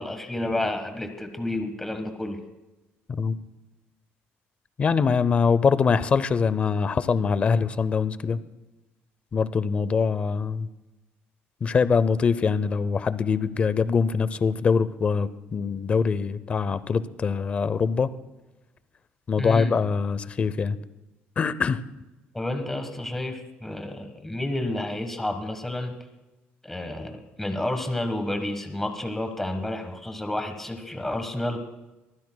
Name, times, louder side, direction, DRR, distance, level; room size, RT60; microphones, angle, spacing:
voice 1, 0.0-2.4 19.4-19.7 22.3-25.9 26.6-31.6, left 1 dB, 5° left, 6 dB, 1.3 m, -30 dB
voice 2, 4.8-8.4 9.3-10.7 11.6-18.1 19.3-20.8 21.4-21.8, left 5 dB, 30° left, 16 dB, 0.6 m, -23 dB
23.5 x 15.5 x 2.3 m, 1.1 s
cardioid pair, 165°, 4 cm